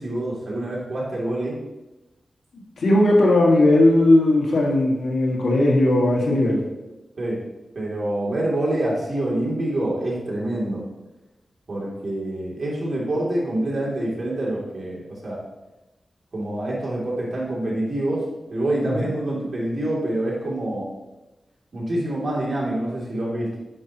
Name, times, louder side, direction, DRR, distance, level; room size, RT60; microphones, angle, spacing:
voice 1, 0.0-1.6 7.2-7.4 7.7-10.8 11.7-15.4 16.3-18.2 18.5-20.9 21.7-23.6, right 1 dB, 50° right, -5 dB, 2.7 m, -26 dB
voice 2, 2.8-6.6, left 1 dB, 85° left, -2 dB, 1.6 m, -17 dB
9.5 x 5.6 x 2.9 m, 1.0 s
wide cardioid pair, 80°, 0 cm